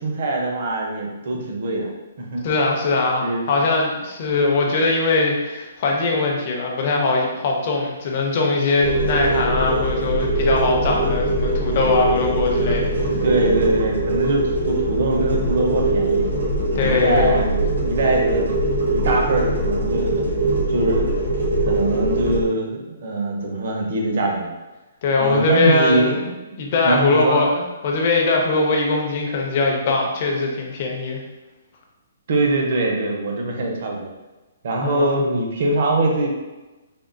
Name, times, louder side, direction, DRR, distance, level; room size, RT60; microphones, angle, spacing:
voice 1, 0.0-1.9 2.2-2.5 3.2-3.4 13.0-16.3 16.7-18.5 18.9-21.1 21.6-24.5 25.2-26.5 26.8-27.4 32.3-34.1 34.6-36.3, right 2 dB, 45° right, 0 dB, 0.6 m, -23 dB
voice 2, 2.4-12.8 13.1-13.2 16.7-17.4 25.0-26.2 26.6-31.2 34.8-35.3, left 3 dB, 30° left, 0 dB, 0.5 m, -21 dB
sound 1, 8.8-22.4, right 1 dB, 85° right, 1.2 m, -22 dB
3.5 x 2.2 x 2.5 m, 1.1 s
hypercardioid pair, 175°, 0 cm